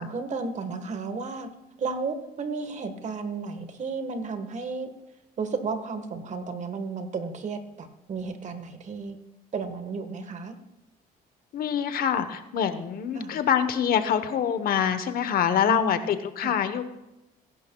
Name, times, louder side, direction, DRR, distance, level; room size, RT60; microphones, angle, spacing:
voice 1, 0.0-1.5 1.8-4.9 5.4-9.2 9.5-10.6 13.1-13.4 15.7-16.6, right 4 dB, 45° right, 8 dB, 1.5 m, -33 dB
voice 2, 11.5-16.8, left 8 dB, 60° left, 10 dB, 1.1 m, -25 dB
21.5 x 11.5 x 2.3 m, 0.96 s
cardioid pair, 110°, 17 cm